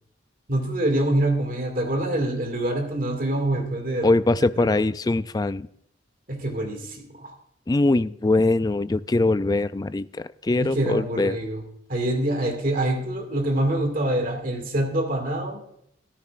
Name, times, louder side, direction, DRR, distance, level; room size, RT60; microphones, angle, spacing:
voice 1, 0.5-4.2 4.6-4.8 6.3-7.3 10.6-11.6 11.9-15.6, right 1 dB, 50° right, 3 dB, 2.1 m, -25 dB
voice 2, 4.0-5.7 7.7-11.4, left 2 dB, 20° left, 14 dB, 0.3 m, -22 dB
14.0 x 13.5 x 2.5 m, 0.73 s
head